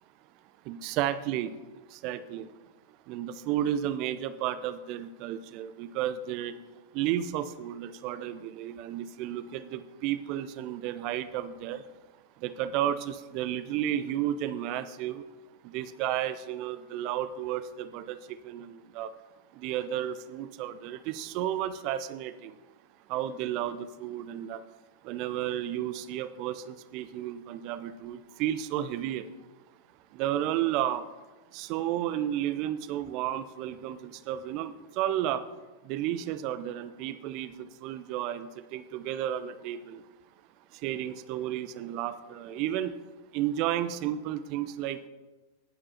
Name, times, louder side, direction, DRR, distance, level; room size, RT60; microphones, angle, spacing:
voice 1, 0.7-1.5 1.9-2.5 3.1-6.6 6.9-11.8 12.4-15.2 15.6-19.1 19.5-22.5 23.1-24.6 25.0-29.3 30.1-31.1 31.5-35.4 35.8-40.0 40.7-42.9 43.3-45.1, right 11 dB, 45° right, 14 dB, 0.6 m, -32 dB
17.5 x 8.7 x 2.8 m, 1.2 s
figure-of-eight pair, 90°, 0 cm